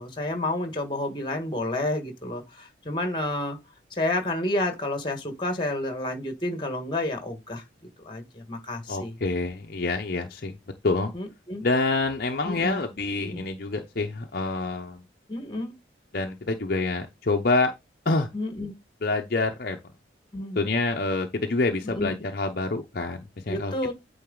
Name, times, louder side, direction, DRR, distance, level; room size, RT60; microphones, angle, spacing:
voice 1, 0.0-3.6 3.9-7.6 8.0-9.1 11.1-11.6 12.4-12.8 13.2-13.4 15.3-15.7 18.3-18.7 20.3-20.6 21.8-22.1 23.5-23.9, left 1 dB, 25° left, 1.5 m, -30 dB
voice 2, 8.9-10.5 10.8-11.1 11.6-15.0 16.1-17.7 18.1-18.3 19.0-19.8 20.6-23.9, left 3 dB, 50° left, 0.7 m, -27 dB
9.0 x 3.9 x 3.8 m
head